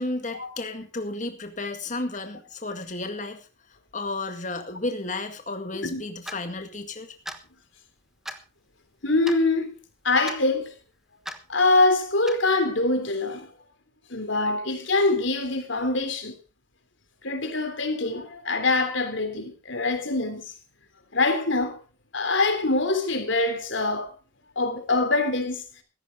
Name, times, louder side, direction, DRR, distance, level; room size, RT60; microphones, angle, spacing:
voice 1, 0.0-3.5 3.9-7.1, left 2 dB, 35° left, 2.0 m, -32 dB
Clock, 6.3-6.4 7.3-7.4 8.3-8.4 9.3-9.4 10.3-10.4 11.3-11.4 12.3-12.4, equal, ahead, 1.2 m, -36 dB
voice 2, 9.0-9.7 10.0-10.7 11.5-13.5 14.1-16.4 17.2-20.5 21.1-21.8 22.1-24.1 24.6-25.6, left 2 dB, 70° left, 3.5 m, -24 dB
16.0 x 14.5 x 3.9 m
head